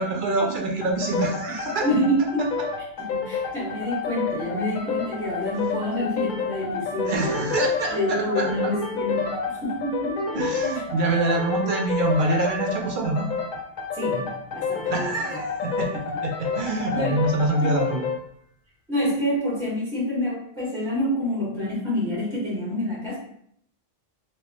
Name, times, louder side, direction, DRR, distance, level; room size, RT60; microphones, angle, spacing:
voice 1, 0.0-1.9 7.1-8.7 10.3-13.3 14.9-18.1, right 2 dB, 55° right, 1 dB, 0.8 m, -25 dB
sound 1, 0.8-18.2, left 5 dB, 55° left, 0.7 m, -29 dB
voice 2, 1.8-2.5 3.0-7.5 7.9-10.5 10.7-10.8 13.9-15.1 16.9-17.2 17.7-17.8 18.9-23.2, equal, ahead, -8 dB, 1.4 m, -27 dB
3.2 x 2.9 x 2.9 m, 0.66 s
omnidirectional pair, 1.0 m